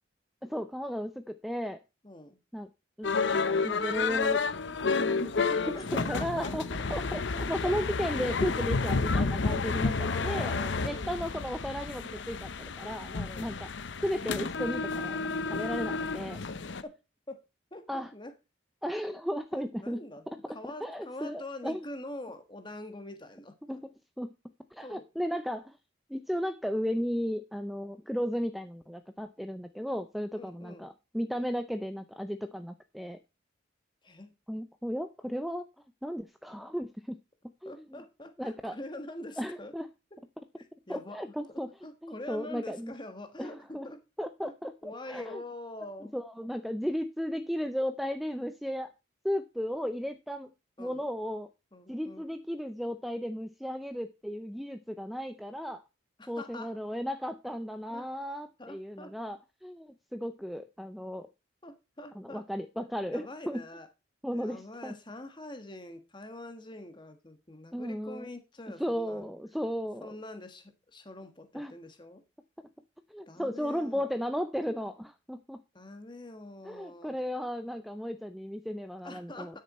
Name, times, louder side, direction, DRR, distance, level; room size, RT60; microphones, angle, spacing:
voice 1, 0.4-1.8 2.5-2.7 3.0-4.5 4.9-7.2 7.5-10.5 10.8-13.7 14.0-15.2 15.5-16.4 17.9-18.1 18.8-20.0 20.8-21.8 23.7-23.9 24.2-24.3 24.7-25.8 26.1-33.2 34.5-35.7 36.0-37.2 37.6-38.0 38.4-38.8 39.4-39.9 40.9-41.7 42.0-42.9 43.4-43.9 44.2-45.4 46.1-48.9 49.2-50.5 50.8-51.5 51.9-55.8 56.3-61.3 62.2-63.6 64.2-64.9 67.7-68.3 68.8-70.2 71.5-71.7 73.1-75.6 76.6-79.6, equal, ahead, 9 dB, 0.5 m, -35 dB
voice 2, 2.0-2.4 5.7-7.8 10.0-11.0 13.2-13.6 17.3-17.4 17.7-18.3 19.5-23.8 24.8-25.1 30.3-30.8 34.0-34.3 37.6-39.7 40.6-41.2 41.8-44.0 44.8-46.1 50.8-51.0 51.7-52.3 56.2-56.8 57.9-58.1 58.6-59.1 61.6-62.4 63.1-63.9 64.3-69.3 70.0-72.2 73.3-74.1 75.7-77.1 79.0-79.6, left 1 dB, 25° left, 8 dB, 1.5 m, -44 dB
sound 1, 3.0-16.8, left 4 dB, 70° left, 0.7 m, -31 dB
12.0 x 6.8 x 4.2 m, 0.28 s
head